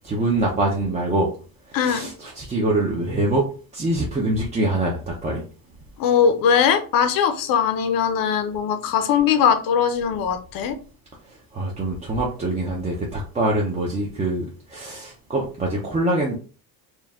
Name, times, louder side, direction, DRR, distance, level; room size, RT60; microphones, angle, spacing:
voice 1, 0.0-1.3 1.7-3.5 3.7-5.4 11.3-16.4, right 2 dB, 20° right, -2 dB, 0.6 m, -24 dB
voice 2, 1.7-2.1 6.0-10.8, left 7 dB, 60° left, 8 dB, 0.8 m, -20 dB
4.5 x 2.4 x 3.5 m, 0.39 s
cardioid pair, 160°, 38 cm